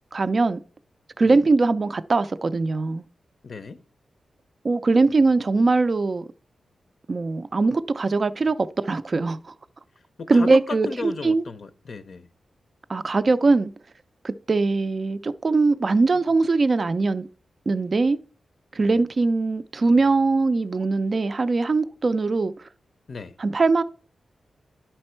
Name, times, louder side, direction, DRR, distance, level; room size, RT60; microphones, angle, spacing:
voice 1, 0.1-0.6 1.2-3.0 4.6-6.3 7.1-9.4 10.3-11.4 12.9-13.7 14.2-17.3 17.7-18.2 18.7-22.5 23.4-23.8, right 3 dB, 40° right, 0.4 m, -21 dB
voice 2, 3.4-3.8 10.2-12.3 18.8-19.0 23.1-23.4, left 4 dB, 55° left, 0.5 m, -35 dB
10.5 x 4.3 x 4.3 m
wide cardioid pair, 105°, 0 cm